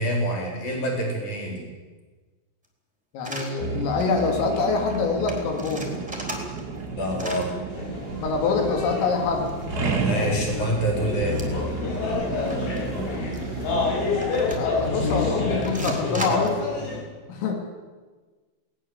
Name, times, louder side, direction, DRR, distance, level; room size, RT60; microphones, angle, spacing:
voice 1, 0.0-1.6 6.9-7.6 9.9-11.4, right 1 dB, 40° left, 0 dB, 5.7 m, -26 dB
voice 2, 3.1-6.0 8.2-9.5 12.2-13.0 14.4-16.6 17.3-17.5, left 4 dB, 90° left, 3 dB, 5.4 m, -25 dB
sound 1, 3.2-3.5 4.0-4.2 4.4-4.5 4.7-5.0 5.3-6.8 7.1-7.5 8.8-9.9 10.3-10.4 11.3-11.7 11.9-12.0 12.5-12.8 13.3-13.4 14.2-14.9 15.6-16.6, right 1 dB, ahead, 2.8 m, -36 dB
sound 2, 3.6-16.0, right 3 dB, 45° right, 1.2 m, -32 dB
sound 3, 7.7-17.0, left 4 dB, 65° left, 8.0 m, -29 dB
20.0 x 18.5 x 8.2 m, 1.4 s
omnidirectional pair, 5.8 m